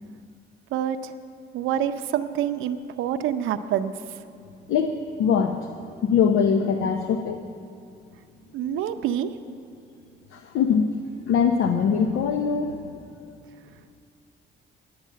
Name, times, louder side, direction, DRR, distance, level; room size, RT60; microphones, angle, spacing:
voice 1, 0.7-1.1 1.5-3.9 8.5-9.3, right 10 dB, 85° right, 9 dB, 0.6 m, -26 dB
voice 2, 4.7-5.7 6.0-7.4 10.3-11.0 11.3-13.0, left 6 dB, 85° left, 6 dB, 0.7 m, -22 dB
10.5 x 10.0 x 7.4 m, 2.4 s
cardioid pair, 90°, 20 cm